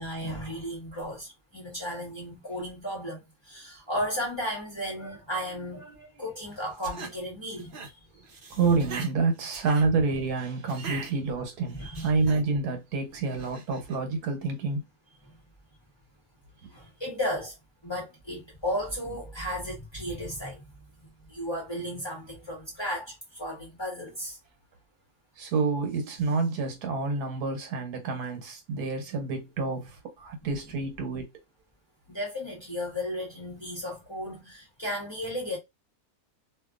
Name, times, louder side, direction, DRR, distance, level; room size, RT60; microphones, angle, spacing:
voice 1, 0.0-7.7 11.7-12.3 16.7-17.5 17.8-20.6 21.3-24.4 32.1-35.6, equal, 20° left, 0.9 m, -34 dB
sound 1, 6.6-7.1 7.6-7.9 8.2-9.1 9.5-9.8 10.7-11.1 11.7-12.4 13.3-14.0, right 4 dB, 50° right, 0.7 m, -41 dB
voice 2, 8.5-14.8 25.4-31.3, right 4 dB, 80° right, 1.3 m, -28 dB
2.6 x 2.6 x 2.4 m
omnidirectional pair, 1.6 m